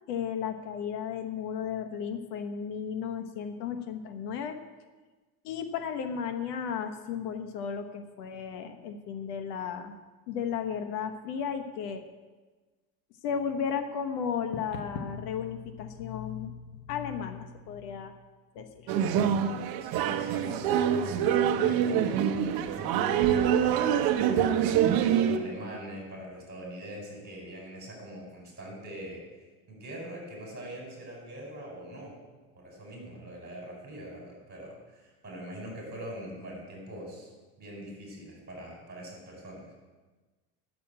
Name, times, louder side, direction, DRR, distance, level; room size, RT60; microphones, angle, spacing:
voice 1, 0.1-4.6 5.4-9.9 10.3-12.0 13.2-18.1 18.5-18.9, left 7 dB, 80° left, 7 dB, 1.3 m, -34 dB
sound 1, 18.9-25.4, right 9 dB, 50° right, 0.9 m, -25 dB
voice 2, 19.5-24.6 25.2-29.2 29.7-32.2 32.5-37.3 37.6-39.6, right 1 dB, 20° right, -1 dB, 4.8 m, -43 dB
10.5 x 6.9 x 8.6 m, 1.3 s
supercardioid pair, 145°, 46 cm